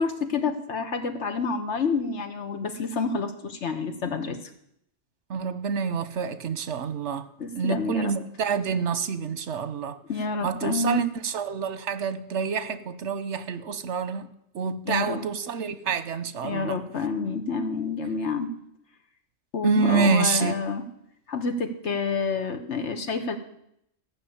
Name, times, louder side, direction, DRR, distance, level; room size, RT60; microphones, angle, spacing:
voice 1, 0.0-4.4 7.4-8.1 10.1-11.0 14.9-15.3 16.4-18.5 19.5-20.8 21.3-23.4, left 4 dB, 80° left, 1.6 m, -28 dB
voice 2, 5.3-7.3 7.5-10.0 10.4-16.8 19.6-20.6, right 5 dB, 80° right, 1.2 m, -27 dB
15.0 x 6.1 x 8.6 m
omnidirectional pair, 1.2 m